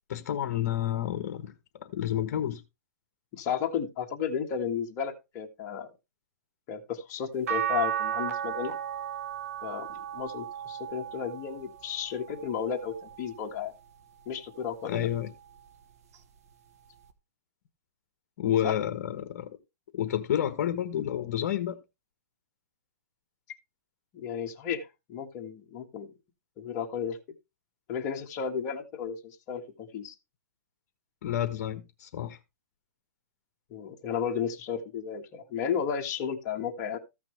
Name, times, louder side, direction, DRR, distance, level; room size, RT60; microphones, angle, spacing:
voice 1, 0.1-1.5 1.8-2.6 14.8-15.3 18.4-19.5 19.9-21.8 31.2-32.4, left 11 dB, 50° left, 1.3 m, -30 dB
voice 2, 3.3-5.9 6.7-8.7 9.6-13.7 14.3-15.1 18.6-18.8 24.1-26.1 26.6-27.2 27.9-30.1 33.7-37.0, left 7 dB, 30° left, 1.7 m, -33 dB
sound 1, 7.5-13.8 14.3-15.7 17.1-17.2, right 10 dB, 60° right, 1.2 m, -36 dB
14.5 x 5.9 x 3.2 m
hypercardioid pair, 155°, 9 cm